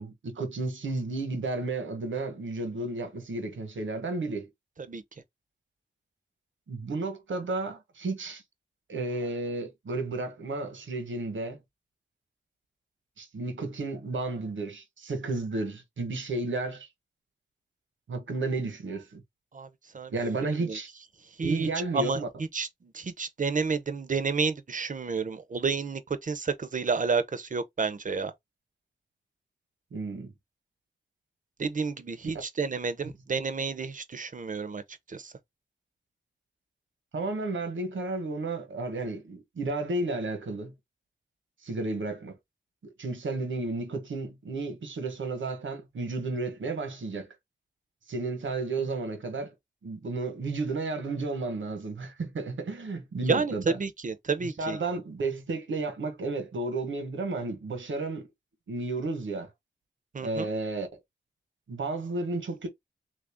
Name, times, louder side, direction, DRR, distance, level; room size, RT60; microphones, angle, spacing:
voice 1, 0.0-4.5 6.7-8.4 8.9-11.6 13.2-16.9 18.1-19.2 20.1-20.9 21.4-22.3 29.9-30.3 37.1-40.7 41.6-42.3 43.0-47.3 48.1-49.5 49.8-53.8 54.4-58.3 58.7-59.5 60.2-60.9 61.7-62.7, right 3 dB, 90° right, 1.1 m, -32 dB
voice 2, 20.4-20.8 21.4-21.7 21.9-22.2 22.5-28.3 31.6-34.8 35.1-35.3 53.3-54.8 60.1-60.5, right 4 dB, 45° right, 0.6 m, -30 dB
3.2 x 2.5 x 3.4 m
wide cardioid pair, 70°, 19 cm